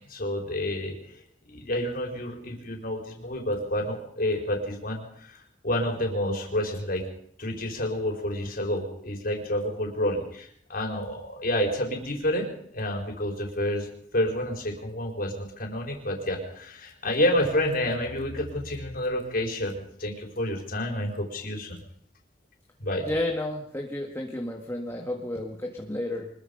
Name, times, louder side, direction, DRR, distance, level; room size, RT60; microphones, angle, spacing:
voice 1, 0.1-1.2 1.5-5.4 5.6-7.0 7.4-13.9 14.1-21.8 22.8-23.1, left 1 dB, 55° left, 1 dB, 4.7 m, -29 dB
voice 2, 23.1-26.3, left 1 dB, 15° left, 1 dB, 1.9 m, -31 dB
25.0 x 21.5 x 5.4 m, 0.66 s
head